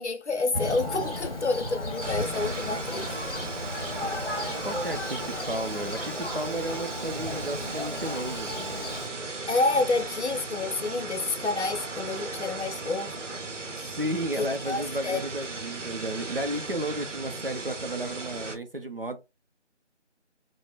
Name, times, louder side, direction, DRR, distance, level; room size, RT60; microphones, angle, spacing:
voice 1, 0.0-3.1 9.5-13.3 14.4-15.2, left 3 dB, 70° left, 0.6 m, -29 dB
Thunder, 0.5-9.1, left 1 dB, 50° left, 1.0 m, -35 dB
sound 1, 2.0-18.6, right 3 dB, 85° right, 0.8 m, -36 dB
voice 2, 4.6-8.9 14.0-19.2, right 1 dB, 50° right, 0.5 m, -33 dB
3.3 x 2.1 x 2.4 m
figure-of-eight pair, 180°, 36 cm